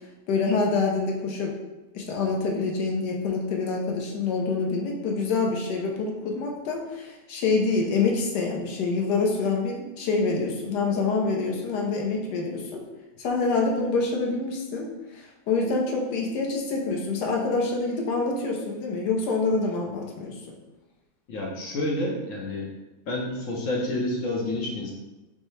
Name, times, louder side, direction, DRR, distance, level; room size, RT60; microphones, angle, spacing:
voice 1, 0.3-1.6 1.9-12.8 13.2-14.9 15.1-20.6, left 4 dB, 85° left, 0 dB, 1.3 m, -26 dB
voice 2, 21.3-22.7 23.1-24.9, left 1 dB, 60° left, -2 dB, 0.9 m, -29 dB
5.4 x 2.1 x 3.1 m, 1.1 s
omnidirectional pair, 1.8 m